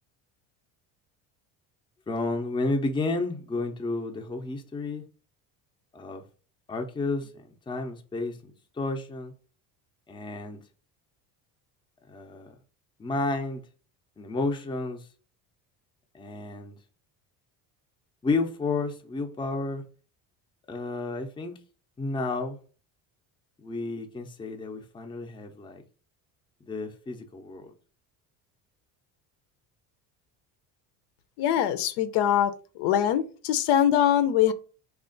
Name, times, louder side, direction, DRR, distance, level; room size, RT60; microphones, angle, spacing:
voice 1, 2.1-5.0 5.9-6.2 6.7-9.3 10.1-10.6 12.1-12.5 13.0-13.6 14.2-15.1 16.1-16.8 18.2-19.8 20.7-21.6 22.0-22.6 23.6-25.8 26.6-27.7, left 3 dB, 10° left, 0.5 m, -31 dB
voice 2, 31.4-34.5, left 10 dB, 75° left, 0.6 m, -23 dB
3.3 x 2.4 x 3.8 m
cardioid pair, 110°, 40 cm